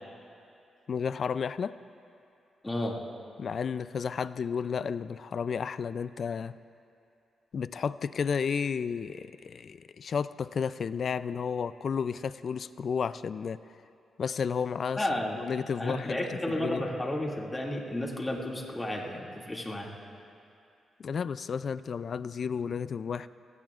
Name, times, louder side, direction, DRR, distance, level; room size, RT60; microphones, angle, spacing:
voice 1, 0.9-1.8 3.4-6.6 7.5-13.6 14.2-16.9 21.0-23.3, left 6 dB, 55° left, 15 dB, 0.3 m, -32 dB
voice 2, 2.6-3.0 15.0-15.4 15.8-19.9, left 1 dB, 15° left, -2 dB, 2.3 m, -32 dB
28.0 x 16.5 x 2.5 m, 2.6 s
cardioid pair, 95°, 0 cm